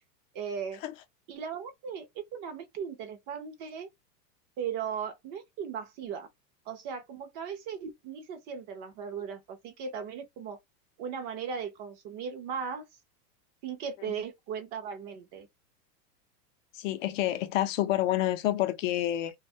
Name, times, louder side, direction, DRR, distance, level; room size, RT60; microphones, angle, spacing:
voice 1, 0.3-0.8 1.3-3.9 4.6-6.3 6.7-10.6 11.0-12.9 13.6-15.5, right 7 dB, 35° right, 0.5 m, -37 dB
voice 2, 16.8-19.3, left 13 dB, 55° left, 0.5 m, -28 dB
2.3 x 2.0 x 2.6 m
hypercardioid pair, 125°, 48 cm